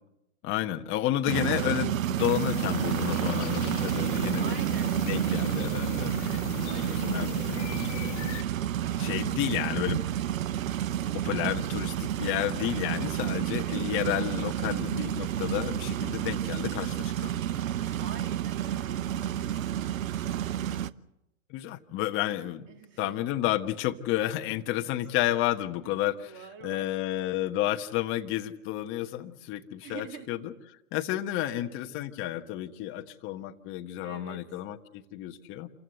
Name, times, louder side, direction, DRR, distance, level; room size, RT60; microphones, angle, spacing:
voice 1, 0.4-4.5 5.0-6.2 6.8-8.0 9.0-10.0 11.1-17.5 21.5-22.6 23.0-26.3 26.6-30.5 30.9-35.7, left 13 dB, 30° left, 5 dB, 1.3 m, -31 dB
sound 1, 1.3-20.9, right 11 dB, 70° right, 0.9 m, -30 dB
sound 2, 2.2-8.4, left 9 dB, 55° left, 1.7 m, -38 dB
voice 2, 4.3-5.0 6.6-7.6 8.8-9.8 18.0-20.2 22.7-23.2 25.1-25.2 25.8-25.9 26.2-27.0 29.8-30.3 31.4-31.9 34.0-34.4, right 6 dB, 25° right, 4 dB, 3.4 m, -46 dB
28.0 x 15.5 x 8.1 m, 0.90 s
hypercardioid pair, 115°, 42 cm